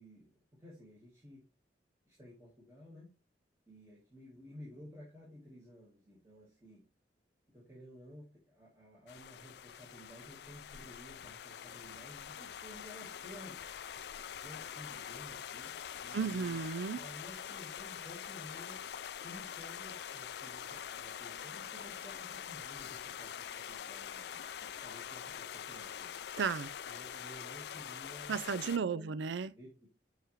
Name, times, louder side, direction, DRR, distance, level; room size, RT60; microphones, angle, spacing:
voice 1, 0.0-1.4 2.1-3.1 3.7-6.8 7.5-13.6 14.4-16.6 16.9-18.8 19.2-26.1 26.9-29.2 29.5-29.9, left 1 dB, 15° right, 1.6 m, -54 dB
sound 1, 9.1-28.8, left 9 dB, 60° left, 0.3 m, -45 dB
voice 2, 16.1-17.0 26.4-26.7 28.3-29.5, right 6 dB, 80° right, 0.4 m, -34 dB
6.7 x 4.9 x 3.1 m
head